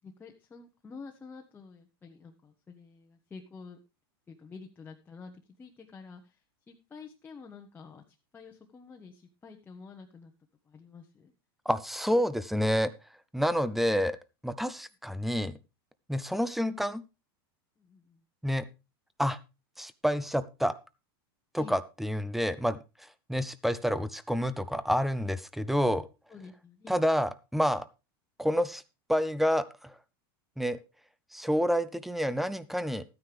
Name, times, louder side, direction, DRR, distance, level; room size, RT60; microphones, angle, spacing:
voice 1, 0.0-3.8 4.3-5.3 5.6-6.4 6.7-8.0 8.3-10.3 10.7-11.3 17.8-18.2 21.6-21.8 26.3-27.0, left 5 dB, 15° left, 3 dB, 1.1 m, -49 dB
voice 2, 11.7-12.9 13.3-14.2 14.4-15.5 16.1-17.0 18.4-18.7 19.2-19.4 19.8-20.7 21.5-22.8 23.3-26.1 26.9-27.9 28.4-28.8 29.1-29.9 30.6-30.8 31.3-33.0, equal, ahead, 16 dB, 0.6 m, -28 dB
13.0 x 9.5 x 3.4 m, 0.28 s
supercardioid pair, 135°, 12 cm